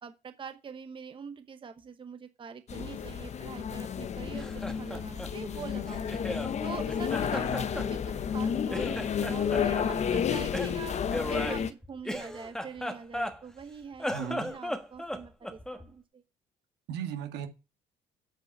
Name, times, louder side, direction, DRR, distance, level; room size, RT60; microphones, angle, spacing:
voice 1, 0.0-6.2 6.6-8.0 8.3-11.0 11.3-14.1 14.4-16.2, right 6 dB, 30° right, 1.1 m, -44 dB
sound 1, 2.7-11.7, left 7 dB, 40° left, 0.9 m, -31 dB
Laughter, 4.3-6.5 6.9-8.4 8.7-9.9 10.5-13.6 13.9-15.9, equal, 5° left, 1.3 m, -36 dB
voice 2, 14.1-14.5 16.9-17.5, right 8 dB, 85° right, 1.8 m, -36 dB
8.8 x 5.3 x 7.3 m
cardioid pair, 110°, 17 cm